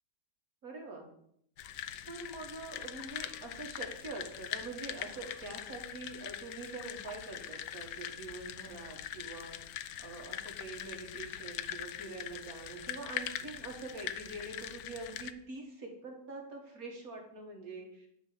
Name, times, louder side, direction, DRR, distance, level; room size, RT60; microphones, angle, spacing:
voice 1, 0.6-1.1 2.1-9.5 10.0-18.1, right 3 dB, 60° right, 1 dB, 2.4 m, -45 dB
sound 1, 1.6-15.3, left 11 dB, 85° left, 1.2 m, -42 dB
9.7 x 4.7 x 6.8 m, 0.72 s
omnidirectional pair, 1.8 m